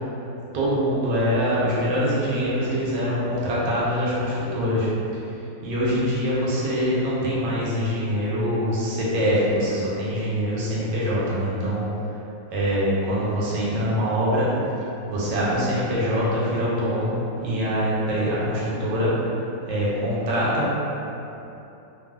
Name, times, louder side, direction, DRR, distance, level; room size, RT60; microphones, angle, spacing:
voice 1, 0.5-4.9 5.6-11.9 12.5-14.5 15.1-19.1 19.7-20.8, equal, 80° right, -7 dB, 1.3 m, -24 dB
2.9 x 2.6 x 2.2 m, 2.9 s
omnidirectional pair, 2.0 m